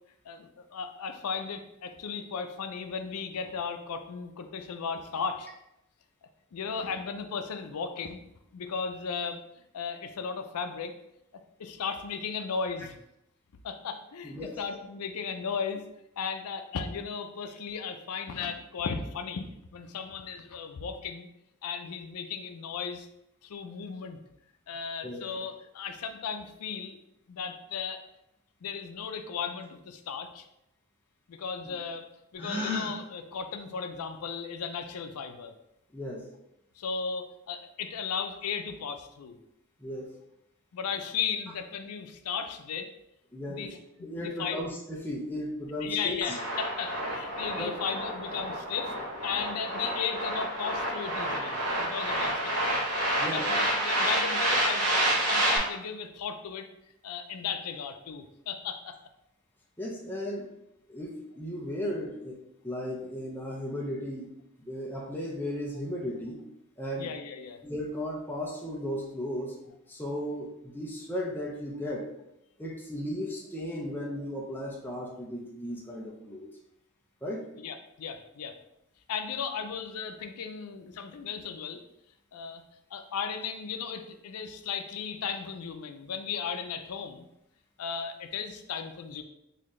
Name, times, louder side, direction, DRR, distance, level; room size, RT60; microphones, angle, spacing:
voice 1, 0.2-5.5 6.5-8.2 8.5-9.4 9.7-10.9 11.6-13.0 13.6-15.8 16.2-19.5 19.7-21.3 21.6-23.1 23.4-24.2 24.7-27.0 27.3-28.0 28.6-30.4 31.3-32.0 32.3-35.5 36.8-39.4 40.7-42.9 43.5-44.6 45.8-48.9 49.2-52.8 53.3-56.7 57.0-59.0 67.0-67.6 77.6-78.6 79.1-81.8 82.3-82.6 82.9-87.3 87.8-89.2, left 6 dB, 85° left, 7 dB, 0.4 m, -36 dB
voice 2, 14.2-14.6 25.0-25.2 31.6-31.8 35.9-36.2 39.8-40.1 43.3-43.7 44.0-46.3 47.6-47.7 53.2-53.4 59.8-60.5 60.9-62.4 62.6-64.3 64.6-66.4 66.8-67.1 67.6-69.6 69.9-72.1 72.6-76.5 77.2-77.5, equal, 10° left, -3 dB, 0.6 m, -35 dB
Gasp, 32.4-32.9, left 2 dB, 10° right, 1.2 m, -31 dB
sound 1, 46.2-55.6, right 1 dB, 85° right, 1.1 m, -29 dB
4.0 x 2.7 x 3.1 m, 0.83 s
head